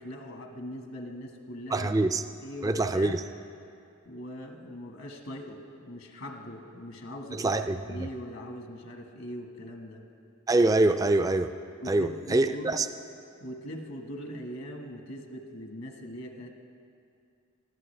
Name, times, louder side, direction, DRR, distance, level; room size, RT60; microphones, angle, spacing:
voice 1, 0.0-1.9 2.4-3.2 4.0-10.0 11.8-12.8 13.4-16.5, equal, 70° left, 3 dB, 1.5 m, -41 dB
voice 2, 1.7-2.2 2.6-3.2 7.3-8.1 10.5-11.5 11.9-12.9, right 2 dB, 15° right, 9 dB, 0.3 m, -25 dB
20.0 x 14.5 x 3.3 m, 2.5 s
head